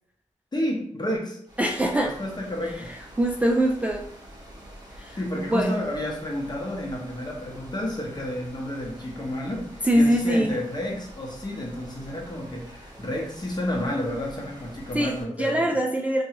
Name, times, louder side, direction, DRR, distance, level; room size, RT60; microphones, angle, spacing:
voice 1, 0.5-1.4 2.0-2.9 5.2-15.6, left 1 dB, 35° left, -1 dB, 0.9 m, -31 dB
sound 1, 1.5-15.3, equal, 30° right, 0.9 m, -46 dB
voice 2, 1.6-2.1 3.2-4.1 5.0-5.7 9.9-10.6 14.9-16.2, right 1 dB, 10° right, 0 dB, 0.3 m, -23 dB
2.7 x 2.3 x 2.9 m, 0.70 s
cardioid pair, 60°, 13 cm